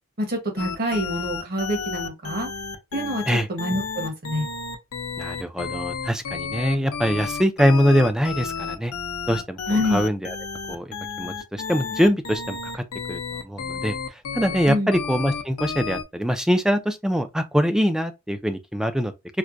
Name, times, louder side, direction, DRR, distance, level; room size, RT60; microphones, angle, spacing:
voice 1, 0.2-2.5 2.9-4.5 9.7-10.0 14.7-14.9, equal, 45° right, 1.1 m, -26 dB
sound 1, 0.6-16.0, left 5 dB, 85° left, 0.6 m, -32 dB
voice 2, 5.2-8.9 9.3-9.6 9.9-10.4 10.7-19.1, equal, 5° right, 0.3 m, -23 dB
4.5 x 2.1 x 2.5 m
head